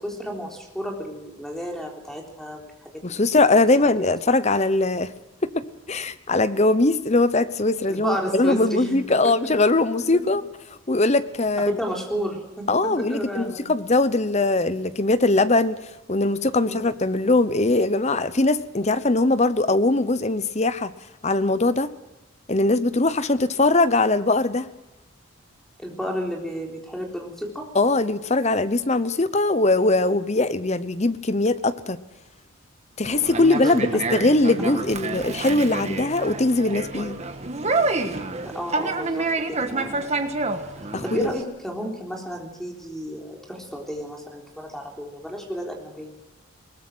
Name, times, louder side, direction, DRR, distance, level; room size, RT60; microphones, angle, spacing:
voice 1, 0.0-3.2 4.1-4.2 7.9-8.9 9.2-9.3 11.7-13.7 16.6-16.8 25.8-27.7 33.5-33.8 38.5-40.3 41.0-46.2, equal, ahead, 0 dB, 3.7 m, -32 dB
voice 2, 3.0-5.1 5.4-10.4 10.9-11.8 12.7-15.8 16.1-20.9 21.2-21.9 22.5-24.7 27.7-32.0 33.0-37.2 40.9-41.3, left 2 dB, 30° left, 14 dB, 0.8 m, -21 dB
Conversation, 33.0-41.4, right 3 dB, 30° right, 1.4 m, -28 dB
21.5 x 19.5 x 6.3 m, 1.0 s
head